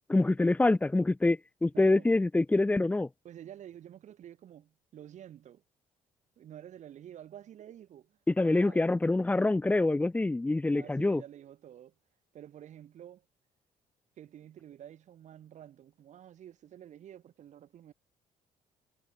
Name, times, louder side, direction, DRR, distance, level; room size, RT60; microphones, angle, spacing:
voice 1, 0.1-3.1 8.3-11.2, left 2 dB, 10° left, 0.6 m, -26 dB
voice 2, 1.7-2.1 3.2-5.6 6.4-8.2 8.4-8.9 10.7-11.9 12.3-13.2 14.2-17.9, right 10 dB, 60° right, 2.7 m, -49 dB
cardioid pair, 90°, 14 cm